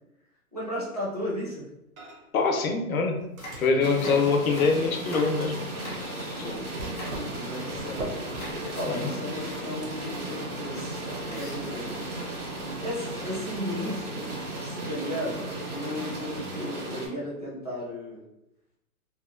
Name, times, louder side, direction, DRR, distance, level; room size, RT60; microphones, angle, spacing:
voice 1, 0.5-1.7 4.0-4.2 6.3-6.7 7.1-8.2 8.6-12.1 12.8-18.2, left 1 dB, 30° right, -8 dB, 0.4 m, -35 dB
Microwave oven, 2.0-2.5 2.7-5.0 5.4-16.4, right 3 dB, 65° right, 0.7 m, -45 dB
voice 2, 2.3-3.2 3.6-5.6 6.0-6.5 8.9-9.1, left 4 dB, 70° left, 4 dB, 0.6 m, -24 dB
sound 1, 3.2-6.4 6.9-7.4 7.6-8.0 8.4-9.2 9.6-9.7 9.9-10.1 11.3-12.2 12.9-13.5, equal, 30° left, 0.5 m, -44 dB
sound 2, 3.8-17.1, right 1 dB, 85° right, 1.3 m, -35 dB
2.8 x 2.1 x 2.3 m, 0.87 s
hypercardioid pair, 175°, 44 cm